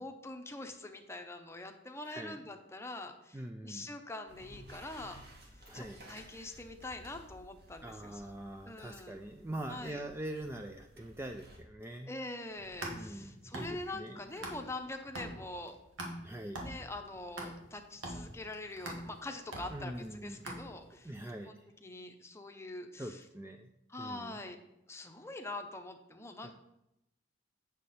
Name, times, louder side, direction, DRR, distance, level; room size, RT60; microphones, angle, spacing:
voice 1, 0.0-5.2 5.7-8.2 8.6-9.2 9.7-10.0 12.1-15.7 16.6-23.2 23.9-24.6 24.9-26.5, left 2 dB, 15° left, 6 dB, 0.7 m, -44 dB
voice 2, 2.0-2.4 3.3-3.9 5.6-6.0 7.8-12.2 12.9-14.2 16.2-16.6 19.7-20.6 21.0-21.7 23.0-23.7 24.0-24.4 26.4-26.5, right 1 dB, 10° right, 5 dB, 0.3 m, -43 dB
sound 1, 4.3-11.6, equal, 55° right, 1.8 m, -55 dB
sound 2, 12.5-14.8 15.2-21.1, right 1 dB, 85° right, 1.9 m, -44 dB
8.2 x 6.5 x 4.2 m, 0.87 s
head